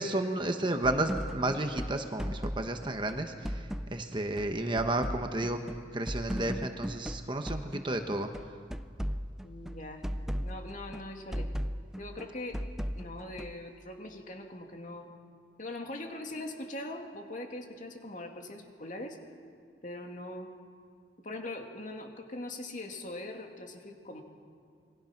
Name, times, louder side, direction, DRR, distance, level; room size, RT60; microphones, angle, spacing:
voice 1, 0.0-5.6 5.9-8.3, right 1 dB, 25° right, 6 dB, 1.2 m, -32 dB
sound 1, 0.8-7.9 8.1-13.7, equal, 5° right, 0.5 m, -37 dB
voice 2, 9.4-10.0 10.4-11.5 12.0-12.6 12.9-15.1 15.6-19.2 19.8-20.5 21.2-24.2, left 1 dB, 45° left, 3 dB, 2.5 m, -41 dB
27.5 x 22.5 x 6.0 m, 2.3 s
head